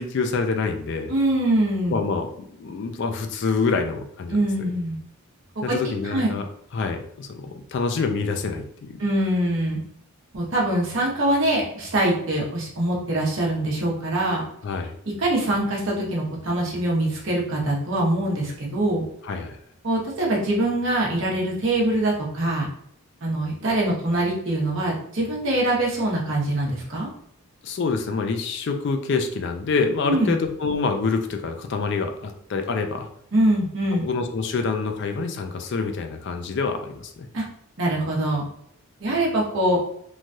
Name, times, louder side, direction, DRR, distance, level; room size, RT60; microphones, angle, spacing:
voice 1, 0.0-1.1 1.9-2.3 2.6-4.7 5.6-6.5 6.7-9.0 14.6-14.9 19.2-19.6 27.6-33.1 34.0-37.3, left 4 dB, 50° left, 6 dB, 0.3 m, -26 dB
voice 2, 1.1-2.0 4.3-5.0 5.7-5.8 6.1-6.3 9.0-9.8 10.3-14.4 15.2-19.0 19.8-22.7 23.2-27.1 30.0-30.3 33.3-34.1 37.3-37.4 37.8-38.5 39.0-39.8, right 1 dB, 55° right, -3 dB, 0.9 m, -23 dB
3.1 x 2.2 x 2.6 m, 0.70 s
head